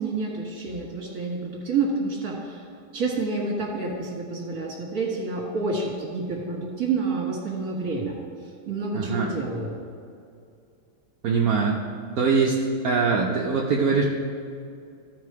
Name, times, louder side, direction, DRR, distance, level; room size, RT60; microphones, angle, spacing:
voice 1, 0.0-2.7 2.9-8.2 8.7-9.8, right 3 dB, 45° right, -2 dB, 2.0 m, -28 dB
voice 2, 8.9-9.3 11.2-11.8 12.2-12.6 12.8-14.0, right 5 dB, 65° right, -2 dB, 0.9 m, -22 dB
14.0 x 4.8 x 4.7 m, 2.4 s
omnidirectional pair, 2.4 m